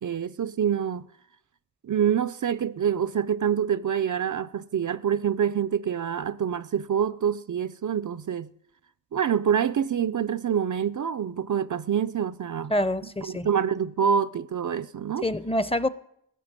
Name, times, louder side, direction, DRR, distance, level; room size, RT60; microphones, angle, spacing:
voice 1, 0.0-1.1 1.8-8.5 9.1-12.7 13.2-15.3, right 8 dB, 60° right, 0.5 m, -26 dB
voice 2, 12.7-13.5 15.2-15.9, left 1 dB, 15° left, 0.7 m, -26 dB
15.0 x 6.9 x 9.7 m
cardioid pair, 50°, 35 cm